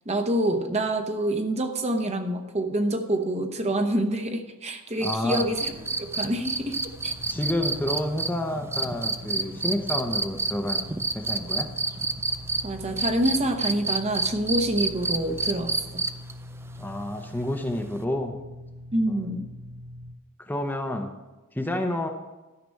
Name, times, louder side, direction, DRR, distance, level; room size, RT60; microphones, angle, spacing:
voice 1, 0.1-5.7 6.0-7.1 12.6-16.1 18.9-19.5, right 1 dB, 30° right, 5 dB, 1.0 m, -27 dB
voice 2, 5.0-5.5 7.3-10.9 11.1-11.7 16.8-18.4 19.1-19.3 20.4-21.1 21.5-22.1, left 1 dB, 10° left, 4 dB, 0.8 m, -29 dB
sound 1, 5.0-12.6 13.0-16.3 18.0-18.1, right 3 dB, 10° right, 0.4 m, -28 dB
sound 2, 5.3-20.1, equal, 85° right, 1.1 m, -43 dB
12.5 x 5.9 x 6.4 m, 1.1 s
head